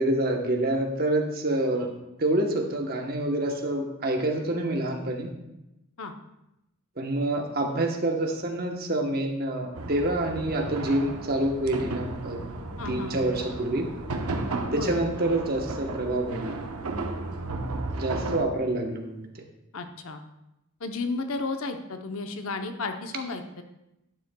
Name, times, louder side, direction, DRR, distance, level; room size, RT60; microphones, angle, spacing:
voice 1, 0.0-5.3 7.0-12.4 12.9-13.9 14.7-16.6 18.0-19.3, right 1 dB, 45° right, 2 dB, 1.0 m, -27 dB
sound 1, 9.8-18.5, right 2 dB, 85° right, 0.8 m, -34 dB
voice 2, 12.8-13.3 14.7-14.9 18.0-18.4 19.7-20.2 20.8-23.6, left 3 dB, 75° left, 6 dB, 0.8 m, -33 dB
11.5 x 9.3 x 2.3 m, 0.89 s
head